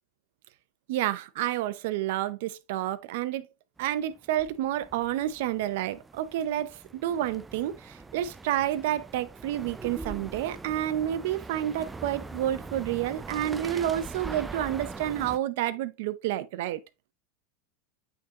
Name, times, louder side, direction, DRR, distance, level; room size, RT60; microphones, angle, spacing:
voice 1, 0.9-3.5 3.8-16.8, right 12 dB, 70° right, 0.7 m, -29 dB
sound 1, 3.8-15.4, right 3 dB, 10° right, 0.4 m, -42 dB
8.4 x 3.8 x 3.0 m
supercardioid pair, 135°, 0 cm